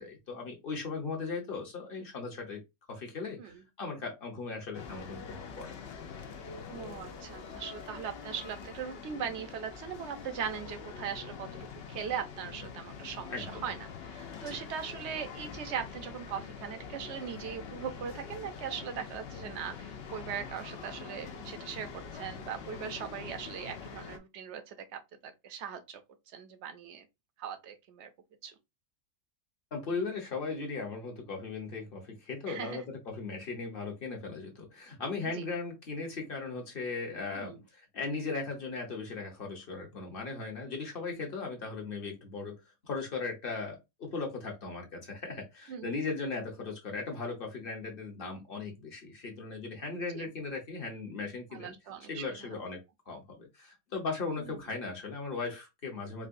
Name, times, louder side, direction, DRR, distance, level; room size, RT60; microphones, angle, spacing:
voice 1, 0.0-2.6 2.9-5.9 13.3-13.7 14.5-14.6 29.7-51.7 52.1-52.8 53.1-56.3, left 4 dB, 45° left, 1.0 m, -38 dB
sound 1, 4.7-24.2, left 6 dB, 65° left, 0.6 m, -45 dB
voice 2, 6.7-11.5 11.9-26.0 26.3-27.1 27.4-28.1 28.4-28.5 32.5-32.8 35.3-35.4 37.3-37.6 45.7-45.9 50.1-50.3 51.5-52.6 54.4-54.6, right 8 dB, 60° right, 0.8 m, -40 dB
4.6 x 2.1 x 2.5 m
omnidirectional pair, 1.6 m